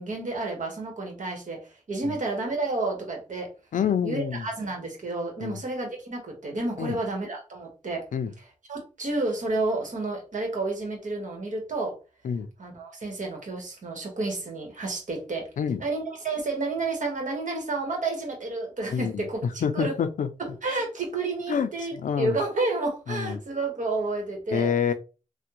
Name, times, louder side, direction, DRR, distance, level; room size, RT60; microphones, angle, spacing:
voice 1, 0.0-3.5 4.0-8.1 8.7-12.0 12.6-15.5 15.8-19.9 20.4-24.7, right 2 dB, 75° right, 1.2 m, -30 dB
voice 2, 3.7-4.4 5.4-5.6 6.8-7.0 8.1-8.3 12.2-12.5 15.6-15.8 18.9-19.3 19.6-20.3 21.5-21.7 22.0-22.4 23.1-23.4 24.5-24.9, left 7 dB, 85° left, 0.4 m, -27 dB
3.3 x 2.2 x 3.0 m
wide cardioid pair, 65°, 13 cm